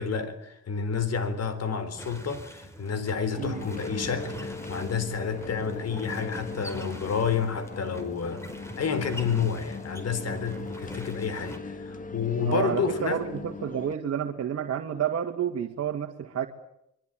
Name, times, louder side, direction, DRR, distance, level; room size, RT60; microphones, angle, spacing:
voice 1, 0.0-8.5 8.8-13.2, left 6 dB, 55° left, 4.1 m, -30 dB
sound 1, 2.0-11.6, equal, 10° left, 4.7 m, -44 dB
sound 2, 3.3-13.9, left 4 dB, 25° left, 2.0 m, -39 dB
voice 2, 12.4-16.5, right 9 dB, 55° right, 2.0 m, -30 dB
25.0 x 23.0 x 9.0 m
cardioid pair, 90°, 30 cm